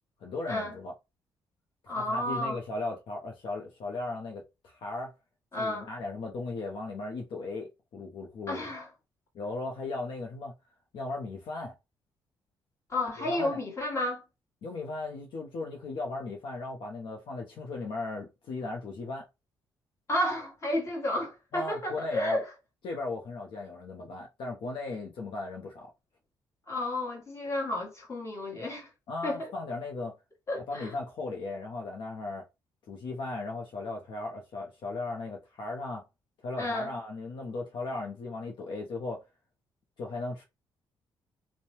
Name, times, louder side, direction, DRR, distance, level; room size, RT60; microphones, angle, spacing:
voice 1, 0.2-0.9 1.8-5.1 5.6-8.7 9.3-10.5 10.9-11.7 13.2-13.6 14.6-19.3 21.5-22.4 22.8-25.9 29.1-30.1 30.5-32.4 32.9-36.0 36.4-39.2 40.0-40.4, left 3 dB, 70° left, 0.7 m, -37 dB
voice 2, 1.9-2.6 5.5-5.9 8.5-8.9 12.9-14.2 20.1-22.4 26.7-28.9 29.2-29.5 30.5-31.0 36.6-36.9, left 1 dB, 35° left, 1.4 m, -31 dB
2.7 x 2.1 x 3.0 m
cardioid pair, 80°, 9 cm